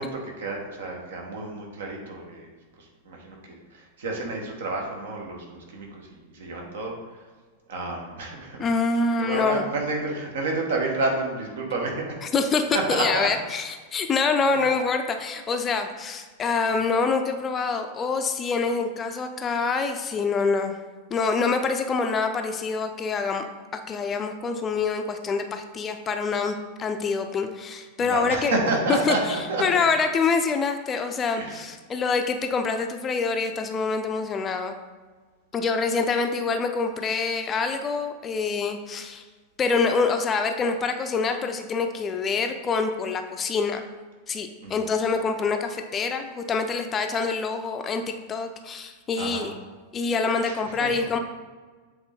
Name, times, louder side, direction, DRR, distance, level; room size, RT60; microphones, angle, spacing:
voice 1, 0.0-2.5 2.8-7.3 7.7-8.7 9.2-12.2 12.7-13.3 14.5-14.6 16.7-16.8 28.0-29.9 31.4-31.6 44.6-44.8 49.2-49.5 50.4-51.1, right 2 dB, 60° right, 1 dB, 1.3 m, -30 dB
voice 2, 8.6-9.7 12.3-20.8 21.1-23.4 23.7-28.6 28.9-29.2 29.6-34.8 35.5-39.2 39.6-43.8 44.3-49.5 49.9-51.2, left 4 dB, 25° left, 6 dB, 0.5 m, -26 dB
7.9 x 3.7 x 3.8 m, 1.4 s
figure-of-eight pair, 90°, 0 cm